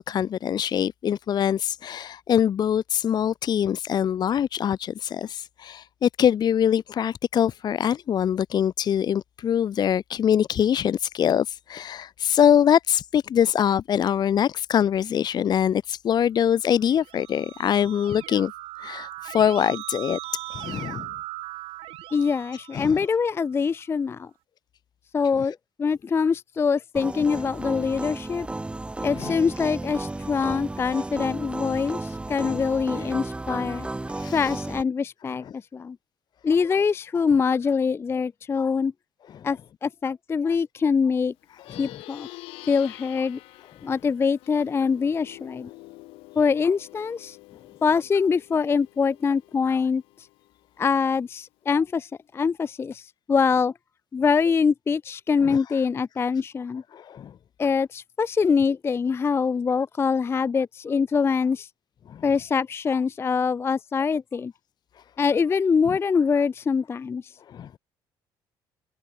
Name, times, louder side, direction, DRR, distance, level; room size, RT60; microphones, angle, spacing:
voice 1, 0.0-18.5 18.8-21.1 22.7-23.0 29.1-29.4 32.4-32.6 34.2-34.5 35.4-35.5 39.3-39.4 41.7-42.0 55.4-55.8 56.9-57.3 62.1-62.2 65.9-66.0 67.5-67.7, left 9 dB, 50° left, 0.7 m, -24 dB
Keyboard (musical), 16.8-23.4, right 17 dB, 80° right, 1.6 m, -39 dB
voice 2, 22.1-24.3 25.1-28.5 29.0-33.9 34.3-35.4 35.7-36.0 36.4-38.9 39.4-41.3 41.8-42.3 42.7-43.4 43.8-45.7 46.4-47.4 47.8-50.0 50.8-53.7 54.1-56.8 57.6-61.7 62.2-64.5 65.2-67.2, left 5 dB, 25° left, 0.3 m, -24 dB
sound 1, 26.9-34.8, right 2 dB, 10° right, 0.6 m, -33 dB
Plucked string instrument, 41.5-51.2, left 21 dB, 85° left, 2.3 m, -47 dB
cardioid pair, 90°, 9 cm